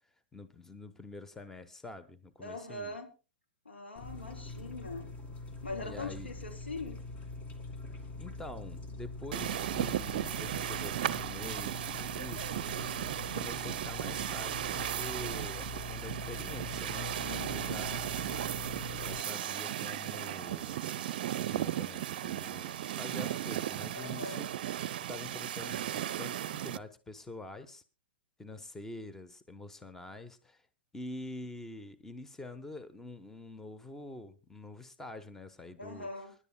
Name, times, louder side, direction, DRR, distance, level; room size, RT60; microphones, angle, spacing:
voice 1, 0.3-3.0 5.8-6.3 8.2-12.7 13.3-18.1 18.9-20.9 21.2-24.5 25.1-27.8 28.4-30.6 30.9-36.1, left 2 dB, 5° left, 10 dB, 1.0 m, -46 dB
voice 2, 2.4-3.1 3.6-5.1 5.6-7.0 17.2-17.8 23.9-24.4 35.8-36.3, left 2 dB, 90° left, 2 dB, 2.9 m, -42 dB
sound 1, 4.0-19.2, left 2 dB, 25° left, 1.9 m, -43 dB
sound 2, 9.3-26.8, right 11 dB, 55° right, 0.6 m, -36 dB
26.5 x 11.0 x 2.2 m, 0.31 s
figure-of-eight pair, 110°, 6 cm